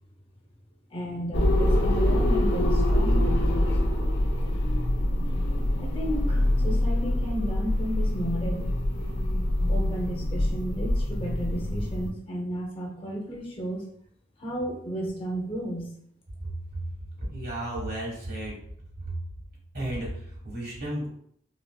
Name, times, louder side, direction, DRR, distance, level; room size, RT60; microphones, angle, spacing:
voice 1, 0.9-3.8 5.8-8.8 9.7-13.8 14.4-15.9, right 1 dB, 30° left, 0 dB, 0.7 m, -33 dB
sound 1, 1.3-12.1, left 1 dB, 75° left, 0.5 m, -25 dB
voice 2, 17.3-18.6 19.0-19.1 19.7-21.1, right 1 dB, 60° right, -4 dB, 1.2 m, -33 dB
4.1 x 2.0 x 2.2 m, 0.65 s
head